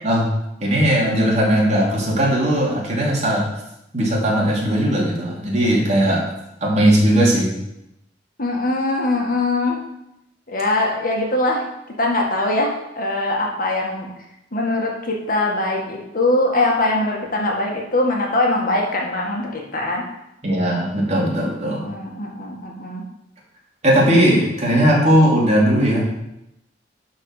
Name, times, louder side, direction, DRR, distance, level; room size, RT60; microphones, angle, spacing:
voice 1, 0.6-3.5 3.9-6.2 6.6-7.5 20.4-21.9 23.8-26.0, right 1 dB, 40° right, -3 dB, 2.9 m, -18 dB
voice 2, 8.4-9.8 10.5-11.6 12.0-14.1 14.5-20.0 21.6-23.0, left 2 dB, 50° left, 0 dB, 1.9 m, -22 dB
11.0 x 4.7 x 6.6 m, 0.85 s
head